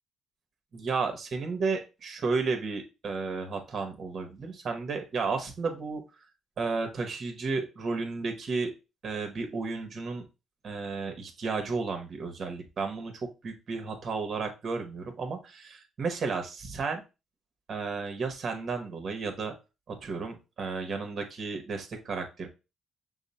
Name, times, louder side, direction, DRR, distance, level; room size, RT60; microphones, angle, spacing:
voice 1, 0.7-6.0 6.6-8.7 9.0-10.3 10.6-17.0 17.7-19.5 19.9-22.5, right 4 dB, 50° right, 5 dB, 1.1 m, -33 dB
6.2 x 2.1 x 4.1 m, 0.28 s
cardioid pair, 90°, 0 cm